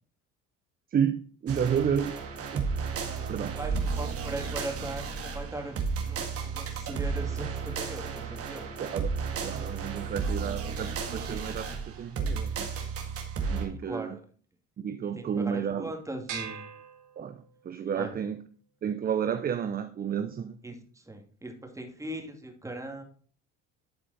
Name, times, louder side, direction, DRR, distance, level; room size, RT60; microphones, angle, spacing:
voice 1, 0.9-2.2 2.5-2.7 3.3-3.6 8.8-9.1 9.4-12.7 13.5-14.2 14.8-15.9 17.2-18.4 18.8-20.6, right 8 dB, 30° right, 0.6 m, -31 dB
sound 1, 1.5-13.7, right 5 dB, 50° right, 1.9 m, -33 dB
voice 2, 3.5-5.8 6.1-8.7 13.8-14.2 15.2-16.6 18.0-18.1 20.6-23.0, right 2 dB, 10° right, 2.2 m, -39 dB
sound 2, 16.3-17.8, right 7 dB, 75° right, 3.1 m, -41 dB
11.5 x 4.5 x 4.1 m
cardioid pair, 100°, 30 cm